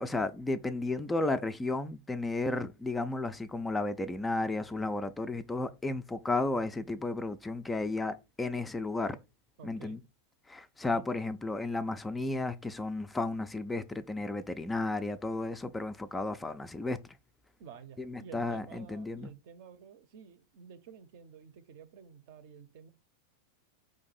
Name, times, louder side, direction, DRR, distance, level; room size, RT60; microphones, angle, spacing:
voice 1, 0.0-9.2 9.6-10.0 10.5-17.0 18.0-19.3, left 2 dB, 10° left, 0.3 m, -33 dB
voice 2, 9.6-10.0 10.9-11.1 17.6-22.9, right 7 dB, 50° right, 0.6 m, -51 dB
5.1 x 2.6 x 3.9 m
figure-of-eight pair, 90°, 0 cm